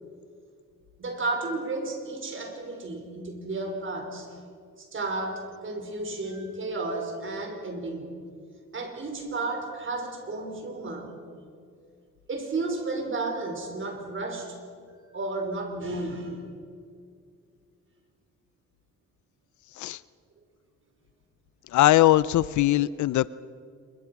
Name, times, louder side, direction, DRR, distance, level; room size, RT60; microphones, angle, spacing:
voice 1, 1.0-4.3 4.8-8.1 8.7-11.2 12.3-14.6 15.1-16.4, right 2 dB, 40° right, 4 dB, 5.3 m, -32 dB
voice 2, 21.7-23.3, left 15 dB, 70° left, 19 dB, 0.6 m, -20 dB
26.5 x 23.5 x 6.0 m, 2.2 s
cardioid pair, 90°, 30 cm